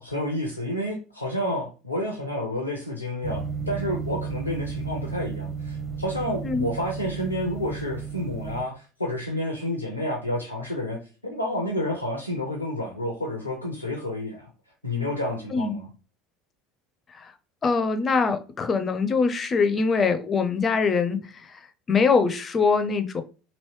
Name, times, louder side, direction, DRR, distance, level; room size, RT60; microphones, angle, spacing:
voice 1, 0.0-11.0 11.2-14.5 14.8-15.9, left 1 dB, 90° left, 0.5 m, -30 dB
sound 1, 3.2-8.6, right 5 dB, 10° right, 0.7 m, -33 dB
voice 2, 17.6-21.2 21.5-21.6 21.9-23.2, left 4 dB, 30° left, 0.5 m, -23 dB
3.1 x 2.7 x 3.1 m
figure-of-eight pair, 70°, 0 cm